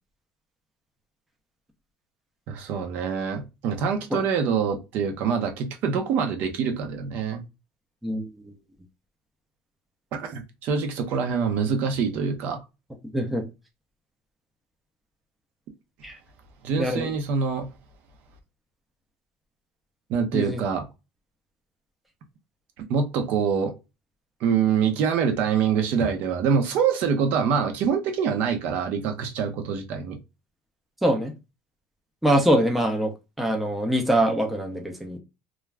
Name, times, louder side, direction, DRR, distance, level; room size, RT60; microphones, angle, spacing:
voice 1, 2.5-7.4 10.2-12.6 16.6-17.7 20.1-20.9 22.9-23.7 24.4-30.2, right 6 dB, 55° right, 0.7 m, -25 dB
voice 2, 8.0-8.5 13.1-13.4 16.0-16.2 16.8-17.1 20.3-20.6 31.0-31.3 32.2-33.1 33.4-35.2, right 1 dB, 5° right, 0.5 m, -23 dB
2.4 x 2.3 x 3.2 m
cardioid pair, 155°, 4 cm